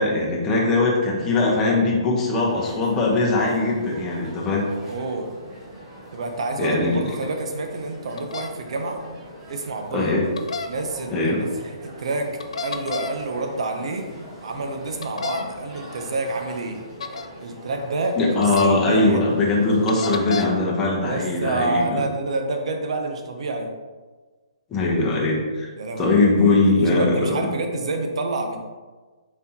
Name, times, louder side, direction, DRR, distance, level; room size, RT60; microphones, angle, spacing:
voice 1, 0.0-4.7 6.6-7.0 9.9-10.3 11.1-11.4 18.1-22.0 24.7-25.7 26.0-27.5, left 2 dB, 15° left, -4 dB, 0.8 m, -21 dB
sound 1, 2.3-20.3, right 1 dB, 20° right, 1.2 m, -42 dB
voice 2, 4.9-5.3 6.1-9.0 9.5-10.1 10.6-14.1 14.4-16.8 17.4-19.2 21.0-23.7 25.7-28.6, right 2 dB, 65° right, 4 dB, 0.7 m, -28 dB
sound 2, 8.2-8.5 10.4-10.7 12.4-13.1 15.0-15.4 17.0-17.3 18.4-18.7 19.9-20.5, left 5 dB, 80° left, 0.4 m, -29 dB
4.2 x 3.4 x 2.7 m, 1.3 s
hypercardioid pair, 155°, 3 cm